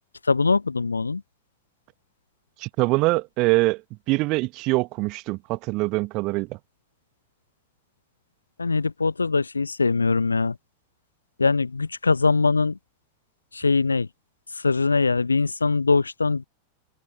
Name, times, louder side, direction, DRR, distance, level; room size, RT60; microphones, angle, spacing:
voice 1, 0.3-1.2 8.6-10.6 11.4-12.8 13.5-14.1 14.5-16.4, left 4 dB, 80° left, 0.9 m, -22 dB
voice 2, 2.6-3.8 4.1-6.6, right 23 dB, 40° right, 1.6 m, -23 dB
open air
figure-of-eight pair, 90°, 0 cm